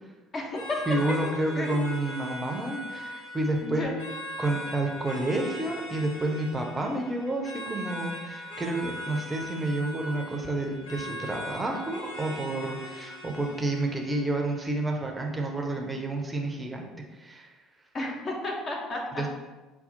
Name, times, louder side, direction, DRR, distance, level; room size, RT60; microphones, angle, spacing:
voice 1, 0.3-1.7 2.9-3.2 3.6-3.9 17.9-19.3, left 2 dB, 35° left, -1 dB, 0.6 m, -33 dB
sound 1, 0.5-15.5, left 1 dB, 75° left, 0.7 m, -40 dB
voice 2, 0.9-3.1 3.3-3.9 4.4-17.5 19.1-19.3, right 2 dB, 15° right, 2 dB, 0.6 m, -30 dB
5.4 x 2.3 x 2.6 m, 1.2 s
figure-of-eight pair, 55°, 0 cm